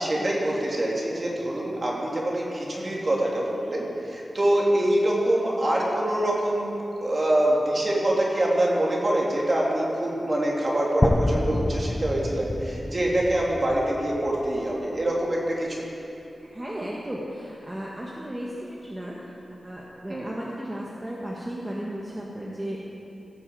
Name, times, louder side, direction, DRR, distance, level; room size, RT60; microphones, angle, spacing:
voice 1, 0.0-6.8 7.0-15.9 20.1-20.3, right 1 dB, 40° right, -3 dB, 3.0 m, -25 dB
sound 1, 11.0-15.0, left 1 dB, 15° left, 0.5 m, -28 dB
voice 2, 16.4-19.3 19.6-22.8, right 1 dB, 20° right, -4 dB, 1.5 m, -35 dB
16.5 x 7.5 x 7.6 m, 2.8 s
wide cardioid pair, 100°, 0 cm